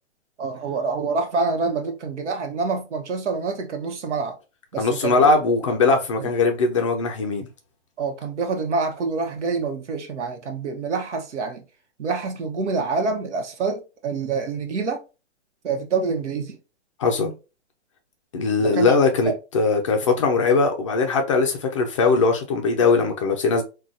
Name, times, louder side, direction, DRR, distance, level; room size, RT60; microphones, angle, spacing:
voice 1, 0.4-4.4 4.7-5.3 6.2-6.3 8.0-11.6 12.0-15.0 15.6-16.6 18.6-18.9 19.2-19.3, right 4 dB, 80° right, 1.0 m, -26 dB
voice 2, 4.8-7.5 17.0-17.3 18.3-23.6, left 4 dB, 30° left, 0.4 m, -20 dB
3.9 x 2.3 x 2.5 m
hypercardioid pair, 145°, 34 cm